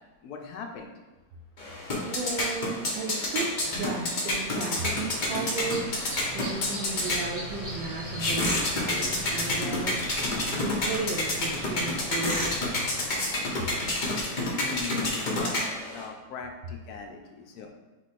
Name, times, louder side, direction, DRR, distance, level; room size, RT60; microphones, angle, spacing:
voice 1, 0.2-0.9 14.5-17.7, left 5 dB, 70° left, 3 dB, 1.0 m, -39 dB
sound 1, 1.6-16.0, left 1 dB, 55° left, 0.5 m, -29 dB
voice 2, 1.6-6.1 6.3-10.0 10.5-12.5, right 3 dB, 85° right, -4 dB, 1.3 m, -35 dB
sound 2, 4.4-14.3, right 1 dB, 20° right, 0.8 m, -41 dB
3.7 x 3.3 x 4.1 m, 1.2 s
omnidirectional pair, 1.9 m